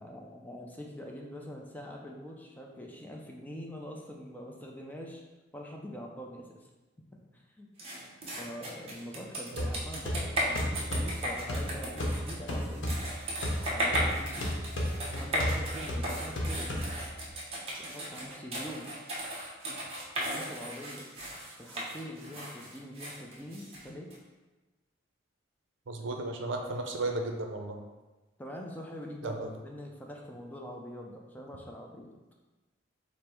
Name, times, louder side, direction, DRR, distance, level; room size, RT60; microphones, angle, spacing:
voice 1, 0.0-5.2 5.5-6.7 7.3-7.7 8.4-12.9 13.7-14.5 15.1-16.9 17.8-19.0 20.2-21.1 21.6-24.1 28.4-32.2, equal, 10° left, 0 dB, 0.4 m, -44 dB
sound 1, 7.8-24.2, equal, 30° right, 1.0 m, -36 dB
sound 2, 9.6-17.3, equal, 80° left, 0.9 m, -34 dB
voice 2, 25.9-27.8 29.2-29.5, right 2 dB, 75° right, 3 dB, 0.6 m, -34 dB
5.1 x 2.1 x 4.4 m, 1.1 s
head